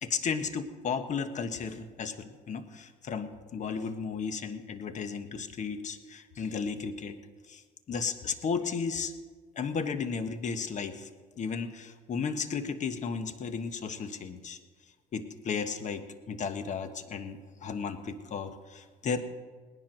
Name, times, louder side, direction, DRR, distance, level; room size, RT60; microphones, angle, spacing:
voice 1, 0.0-7.2 7.5-7.6 7.9-9.1 9.6-11.1 11.4-14.6 15.1-19.2, left 5 dB, 45° left, 9 dB, 1.3 m, -34 dB
18.5 x 10.5 x 6.2 m, 1.5 s
cardioid pair, 110°, 17 cm